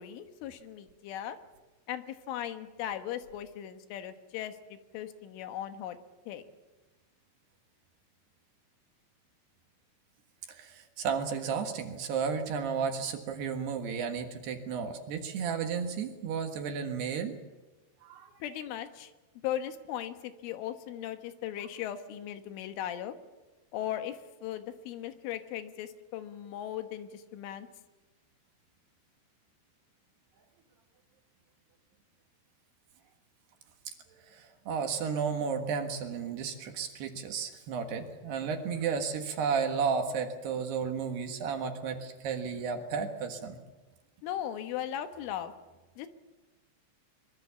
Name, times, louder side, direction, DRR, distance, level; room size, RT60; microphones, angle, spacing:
voice 1, 0.0-1.4 1.9-6.0 6.3-6.4 18.4-19.1 19.4-23.2 23.7-27.7 44.2-45.5 46.0-46.1, left 11 dB, 80° left, 8 dB, 3.7 m, -38 dB
voice 2, 10.5-17.4 18.0-18.3 33.9-43.6, right 6 dB, 65° right, 5 dB, 3.3 m, -33 dB
24.0 x 23.0 x 7.1 m, 1.1 s
omnidirectional pair, 5.7 m